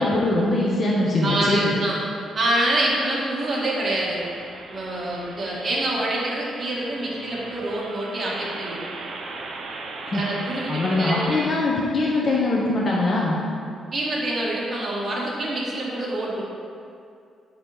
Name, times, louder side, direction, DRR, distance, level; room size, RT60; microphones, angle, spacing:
voice 1, 0.0-1.8 10.1-10.2 10.7-13.4, left 2 dB, 35° left, -5 dB, 0.7 m, -22 dB
voice 2, 1.2-2.0 2.3-4.2 4.7-8.8 10.1-11.2 13.9-16.4, right 1 dB, 30° right, -5 dB, 1.5 m, -26 dB
sound 1, 4.0-11.5, right 3 dB, 55° right, 0.6 m, -37 dB
7.7 x 3.0 x 5.4 m, 2.4 s
cardioid pair, 145°, 0 cm